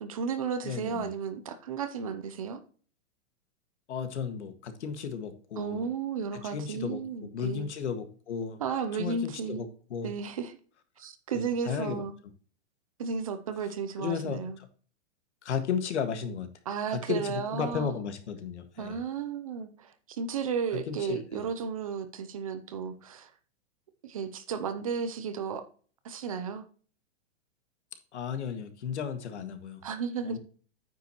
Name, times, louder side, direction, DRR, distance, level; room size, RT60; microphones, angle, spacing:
voice 1, 0.0-2.6 5.6-7.7 8.6-9.6 10.0-10.6 11.0-12.1 13.0-14.6 16.7-18.0 18.8-23.3 24.0-25.6 26.0-26.6 29.8-30.4, right 6 dB, 30° right, 0.6 m, -33 dB
voice 2, 0.6-1.1 3.9-5.9 6.4-8.6 8.9-10.1 11.3-12.0 14.0-14.7 15.4-16.5 16.9-19.0 20.7-21.5 28.1-29.8 30.2-30.4, left 7 dB, 75° left, 1.8 m, -34 dB
9.3 x 7.6 x 3.0 m
supercardioid pair, 180°, 35 cm